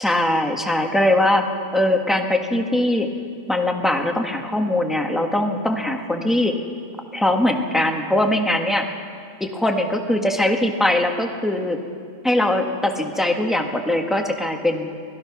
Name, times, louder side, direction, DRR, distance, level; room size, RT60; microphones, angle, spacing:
voice 1, 0.0-3.1 3.5-6.5 7.1-8.9 9.4-11.8 12.2-14.9, left 1 dB, ahead, 2 dB, 1.3 m, -21 dB
28.0 x 19.5 x 6.1 m, 2.3 s
omnidirectional pair, 2.2 m